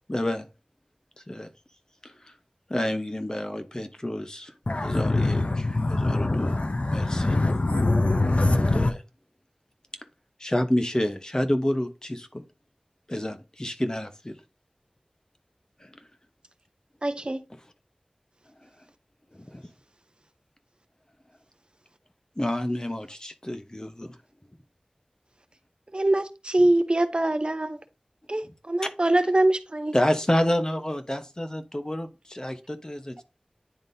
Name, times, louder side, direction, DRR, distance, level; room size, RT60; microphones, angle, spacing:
voice 1, 0.1-0.5 1.3-1.5 2.0-2.1 2.7-4.5 4.8-5.4 5.9-6.6 6.9-7.3 8.7-9.0 10.4-12.4 13.1-14.4 15.8-16.1 19.3-19.6 22.4-24.2 28.8-28.9 29.9-33.2, left 1 dB, 30° left, 0.9 m, -29 dB
voice 2, 4.7-8.9, left 2 dB, 55° left, 0.5 m, -23 dB
voice 3, 17.0-17.4 25.9-27.8 28.3-29.9, right 1 dB, 40° right, 0.7 m, -23 dB
10.0 x 3.7 x 2.7 m
wide cardioid pair, 40°, 3 cm